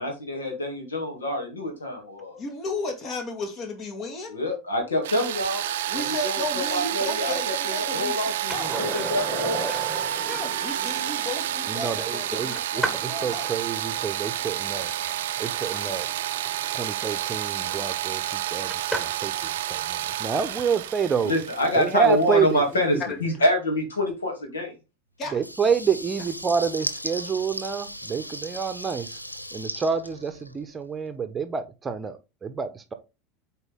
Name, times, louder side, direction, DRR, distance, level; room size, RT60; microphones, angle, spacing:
voice 1, 0.0-2.4 4.3-5.6 5.9-9.7 21.2-24.7, left 1 dB, 75° left, 2.5 m, -26 dB
voice 2, 2.4-4.4 5.9-8.2 8.5-8.7 10.2-13.5 23.0-23.2 25.2-25.4, left 2 dB, 40° left, 2.1 m, -34 dB
sound 1, 5.0-22.8, right 12 dB, 65° right, 0.5 m, -30 dB
Skateboard, 8.5-19.3 21.9-22.0, right 1 dB, 5° left, 2.0 m, -37 dB
voice 3, 11.7-14.9 15.4-16.1 16.7-21.3 21.8-23.0 25.3-29.2 29.5-32.9, right 6 dB, 20° right, 0.9 m, -28 dB
Water tap faucet / Liquid, 25.3-30.8, equal, 90° left, 0.6 m, -37 dB
8.2 x 4.5 x 3.7 m
figure-of-eight pair, 75°, 0 cm